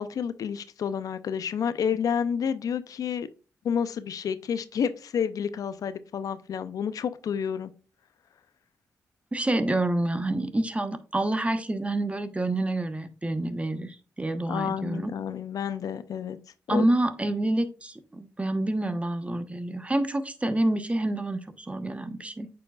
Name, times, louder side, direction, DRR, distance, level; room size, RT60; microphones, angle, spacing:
voice 1, 0.0-3.3 3.6-7.7 14.5-16.4 16.7-16.8, left 7 dB, 70° left, 14 dB, 0.5 m, -30 dB
voice 2, 9.3-15.1 16.7-22.5, right 1 dB, 20° right, 11 dB, 1.0 m, -28 dB
8.4 x 4.8 x 2.4 m, 0.34 s
supercardioid pair, 50°, 6 cm